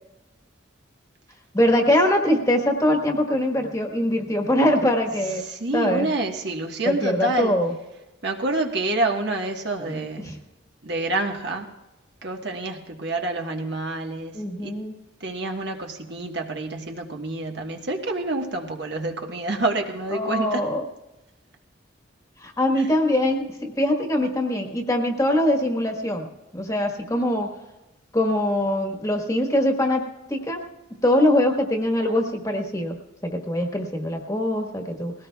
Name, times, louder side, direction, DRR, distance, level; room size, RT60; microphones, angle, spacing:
voice 1, 1.5-5.4 5.7-6.1 6.8-7.7 9.8-10.4 14.3-14.9 20.1-20.8 22.4-26.3 26.5-27.5 28.1-30.6 31.0-35.1, left 1 dB, 15° left, 2 dB, 1.4 m, -23 dB
voice 2, 5.5-7.5 8.2-10.2 10.8-11.7 12.2-14.3 14.6-14.7 15.2-20.6, right 2 dB, 60° right, 2 dB, 1.4 m, -27 dB
20.5 x 17.0 x 2.3 m, 1.0 s
head